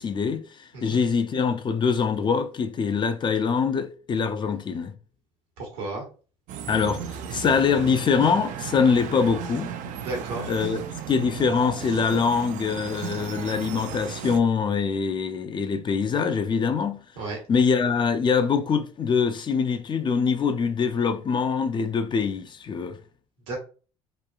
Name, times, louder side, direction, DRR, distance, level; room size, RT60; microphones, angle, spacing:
voice 1, 0.0-4.9 6.7-7.0 7.3-9.7 10.5-17.0 17.5-23.0, left 5 dB, 35° left, 0.4 m, -24 dB
voice 2, 5.6-6.0 10.0-10.5 17.1-17.4 23.5-23.6, right 2 dB, 85° right, 1.1 m, -33 dB
sound 1, 6.5-14.4, right 8 dB, 60° right, 0.4 m, -35 dB
3.0 x 2.3 x 2.3 m
supercardioid pair, 75°, 14 cm